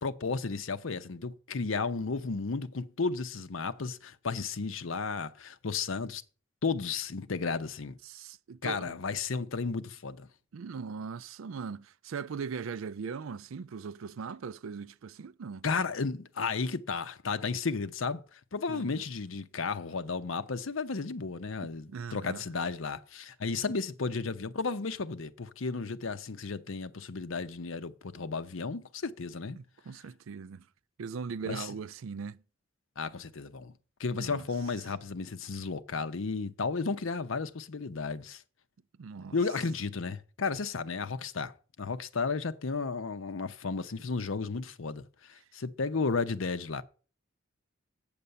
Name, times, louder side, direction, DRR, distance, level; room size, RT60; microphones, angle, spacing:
voice 1, 0.0-6.2 6.6-8.0 8.6-10.3 15.6-29.6 31.4-31.7 33.0-33.7 34.0-38.4 39.3-41.5 41.8-46.8, left 4 dB, 80° left, 0.7 m, -33 dB
voice 2, 8.0-8.9 10.5-15.6 18.7-19.0 21.9-22.4 29.6-30.7 31.0-32.4 34.1-34.4 39.0-39.4, right 5 dB, 85° right, 0.4 m, -40 dB
8.7 x 6.8 x 6.8 m
head